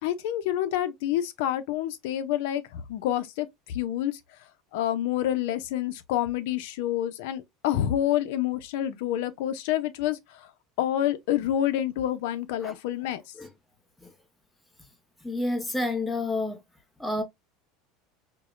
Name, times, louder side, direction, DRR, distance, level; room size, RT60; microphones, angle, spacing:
voice 1, 0.0-4.2 4.7-10.5 10.8-13.2, left 12 dB, 70° left, 0.5 m, -28 dB
voice 2, 15.2-16.6 17.0-17.2, left 2 dB, 5° left, 0.6 m, -29 dB
4.5 x 2.1 x 2.4 m
supercardioid pair, 155°, 0 cm